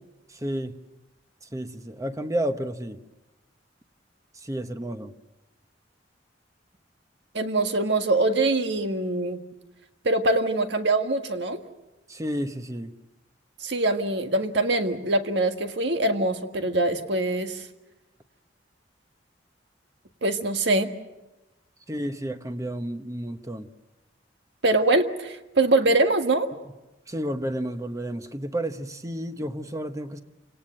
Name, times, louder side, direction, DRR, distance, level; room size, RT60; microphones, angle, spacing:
voice 1, 0.3-0.8 1.4-3.0 4.3-5.1 12.1-12.9 21.9-23.7 27.1-30.2, right 1 dB, 20° right, 9 dB, 1.0 m, -31 dB
voice 2, 7.3-9.4 10.0-11.6 13.6-17.7 20.2-20.9 24.6-26.5, right 2 dB, 70° right, 7 dB, 1.7 m, -23 dB
28.5 x 18.0 x 7.8 m, 1.0 s
head